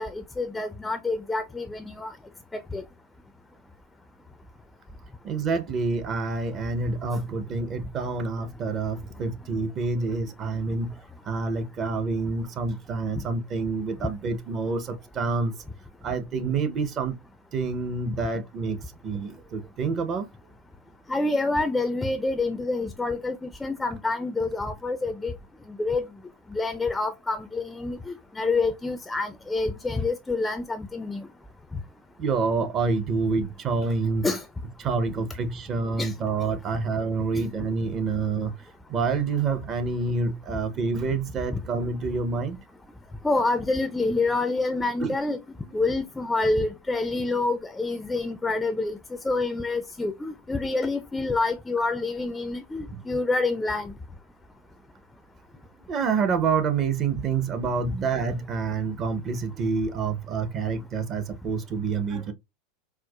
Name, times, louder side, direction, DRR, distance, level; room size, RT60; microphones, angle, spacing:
voice 1, 0.0-2.1 2.5-2.8 13.2-13.3 21.1-25.3 25.8-26.1 26.5-31.3 34.2-34.4 36.0-36.1 43.2-45.4 45.7-49.0 49.2-53.9, left 3 dB, 10° left, 0.4 m, -27 dB
voice 2, 5.2-10.9 11.3-15.5 16.0-17.1 17.5-18.8 19.0-20.3 32.2-34.3 34.8-38.5 38.9-42.6 45.0-45.1 52.9-53.0 55.9-62.3, right 4 dB, 40° right, 0.6 m, -27 dB
4.4 x 2.0 x 2.2 m
supercardioid pair, 110°, 0 cm